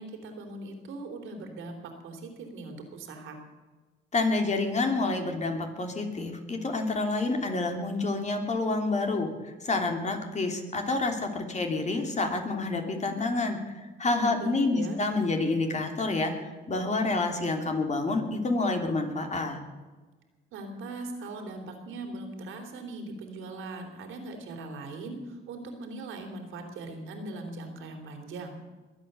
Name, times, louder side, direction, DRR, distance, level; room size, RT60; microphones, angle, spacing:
voice 1, 0.0-3.4 14.2-15.0 20.5-28.6, right 2 dB, 85° right, 3 dB, 3.3 m, -40 dB
voice 2, 4.1-19.6, left 3 dB, 35° left, 4 dB, 3.1 m, -28 dB
22.0 x 8.9 x 6.8 m, 1.3 s
cardioid pair, 90°, 20 cm